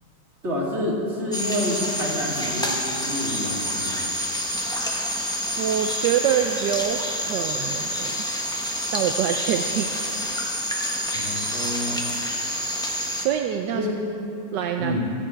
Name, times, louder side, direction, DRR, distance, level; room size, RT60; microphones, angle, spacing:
voice 1, 0.4-4.1 11.1-12.0 13.7-14.0 14.8-15.0, left 1 dB, 35° right, -5 dB, 3.2 m, -28 dB
sound 1, 1.3-13.3, equal, 5° left, 1.0 m, -28 dB
voice 2, 5.6-8.2 8.9-9.9 13.2-13.9 14.5-15.0, right 9 dB, 75° right, 5 dB, 1.2 m, -25 dB
16.0 x 14.5 x 4.5 m, 2.8 s
omnidirectional pair, 2.0 m